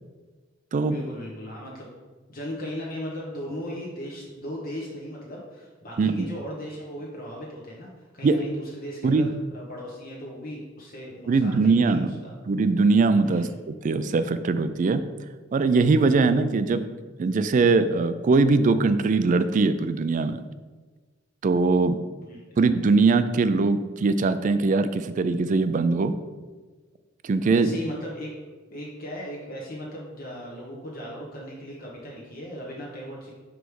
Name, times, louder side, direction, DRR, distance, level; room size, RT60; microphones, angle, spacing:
voice 1, 0.8-1.9 2.3-12.3 13.2-13.5 22.2-22.4 27.5-28.3 28.7-33.3, equal, 50° left, -3 dB, 0.9 m, -37 dB
voice 2, 11.3-12.1 12.5-13.4 13.8-15.1 15.5-16.8 17.2-20.4 21.4-22.0 22.6-26.1 27.2-27.7, right 3 dB, 40° right, 11 dB, 0.3 m, -21 dB
6.2 x 3.4 x 4.7 m, 1.4 s
head